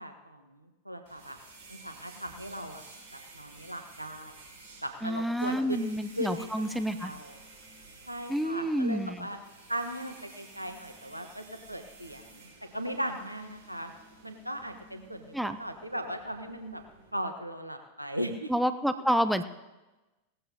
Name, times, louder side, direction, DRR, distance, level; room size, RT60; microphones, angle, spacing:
voice 1, 0.0-1.4 1.7-2.8 3.1-4.4 4.8-5.9 6.2-7.4 8.1-9.4 9.7-13.9 14.2-16.8 17.1-18.5 18.9-19.0, equal, 90° right, 6 dB, 1.3 m, -38 dB
sound 1, 1.1-17.1, right 3 dB, 45° right, 5.6 m, -53 dB
voice 2, 5.0-7.1 8.3-9.3 15.3-15.6 18.5-19.4, equal, ahead, 10 dB, 0.7 m, -29 dB
18.5 x 15.0 x 2.9 m, 1.1 s
figure-of-eight pair, 90°, 0 cm